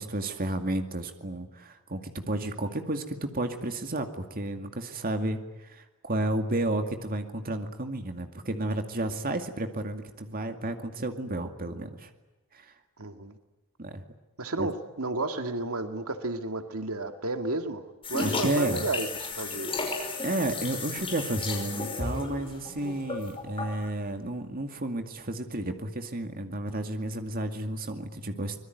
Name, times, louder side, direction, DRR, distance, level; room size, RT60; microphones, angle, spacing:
voice 1, 0.0-12.1 12.5-12.7 13.8-14.0 14.6-14.7 18.2-18.9 20.2-28.6, right 1 dB, 40° right, 6 dB, 2.3 m, -32 dB
voice 2, 13.0-13.3 14.4-17.8 18.1-19.7, right 2 dB, 85° right, 7 dB, 2.2 m, -32 dB
sound 1, 18.0-23.9, left 3 dB, 25° left, 5.4 m, -34 dB
25.5 x 22.0 x 9.4 m, 1.1 s
head